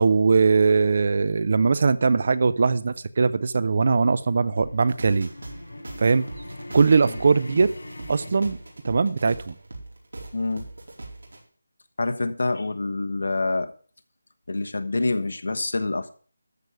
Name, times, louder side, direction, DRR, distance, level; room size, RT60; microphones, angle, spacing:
voice 1, 0.0-5.3 6.0-6.2 6.7-7.7 8.1-8.6 8.9-9.5, right 4 dB, 30° right, 0.4 m, -20 dB
sound 1, 2.8-9.1, left 1 dB, 80° left, 3.5 m, -42 dB
sound 2, 4.6-11.4, right 2 dB, 85° right, 4.4 m, -41 dB
voice 2, 10.3-10.6 12.0-13.7 14.5-16.1, left 2 dB, 60° left, 1.2 m, -26 dB
13.5 x 4.8 x 8.0 m
figure-of-eight pair, 180°, 0 cm